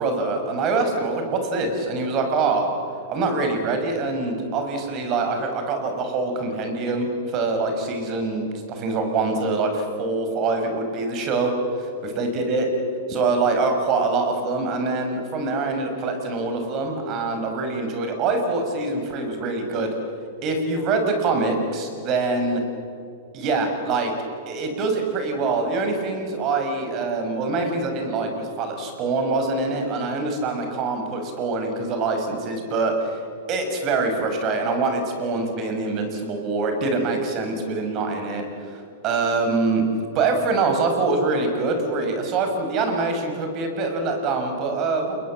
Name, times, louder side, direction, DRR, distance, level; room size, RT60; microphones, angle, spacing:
voice 1, 0.0-2.7 3.1-11.5 12.2-12.7 13.1-19.9 20.4-22.6 23.3-24.1 24.5-33.2 33.5-38.4 39.0-39.8 40.1-45.2, right 3 dB, 40° right, 5 dB, 5.8 m, -24 dB
29.0 x 21.5 x 7.5 m, 2.6 s
hypercardioid pair, 120°, 0 cm